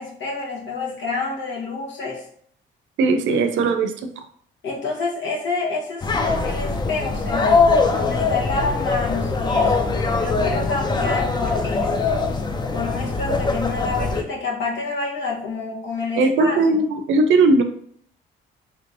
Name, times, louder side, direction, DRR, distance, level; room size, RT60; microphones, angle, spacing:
voice 1, 0.0-2.3 4.6-9.9 10.2-12.0 12.7-16.8, left 3 dB, 65° left, -3 dB, 1.1 m, -28 dB
voice 2, 3.0-3.9 16.2-17.6, right 3 dB, 70° right, 6 dB, 0.5 m, -18 dB
sound 1, 6.0-14.2, left 4 dB, 20° left, 0.4 m, -22 dB
3.2 x 3.0 x 2.5 m, 0.63 s
cardioid pair, 80°, 21 cm